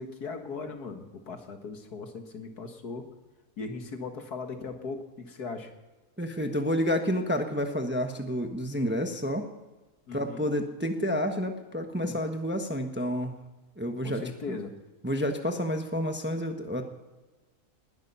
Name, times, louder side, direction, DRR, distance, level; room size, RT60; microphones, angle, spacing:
voice 1, 0.0-3.1 3.6-5.7 10.1-10.4 12.0-12.2 14.0-14.7, left 4 dB, 75° left, 5 dB, 2.2 m, -38 dB
voice 2, 6.2-9.5 10.1-13.4 13.8-14.6 15.0-16.8, equal, 10° right, 5 dB, 1.1 m, -29 dB
19.5 x 11.5 x 5.6 m, 1.2 s
omnidirectional pair, 1.7 m